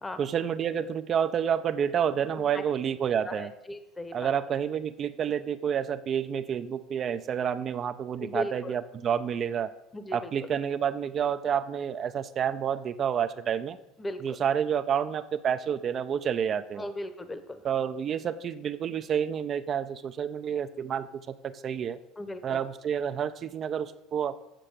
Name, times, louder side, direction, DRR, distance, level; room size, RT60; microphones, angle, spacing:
voice 1, 0.2-3.5 4.1-9.7 10.1-13.8 14.2-16.9 17.6-22.0 22.4-24.4, right 8 dB, 40° right, 10 dB, 0.4 m, -29 dB
voice 2, 3.3-4.3 8.2-8.7 9.9-10.2 14.0-14.2 16.8-17.6 22.2-22.6, left 1 dB, 15° left, 10 dB, 0.9 m, -37 dB
7.5 x 6.6 x 6.6 m, 0.97 s
supercardioid pair, 90°, 0 cm